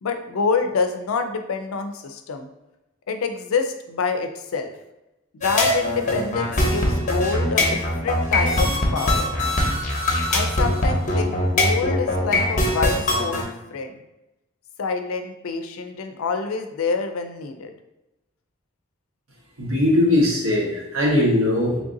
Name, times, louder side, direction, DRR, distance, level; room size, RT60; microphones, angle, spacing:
voice 1, 0.0-2.5 3.1-4.7 5.3-9.3 10.3-13.9 14.8-17.7, left 4 dB, 90° left, 7 dB, 0.4 m, -27 dB
sound 1, 5.4-13.4, left 1 dB, 40° left, 0.7 m, -21 dB
voice 2, 19.6-21.8, left 1 dB, 75° right, -3 dB, 1.2 m, -20 dB
3.2 x 2.6 x 3.8 m, 0.95 s
head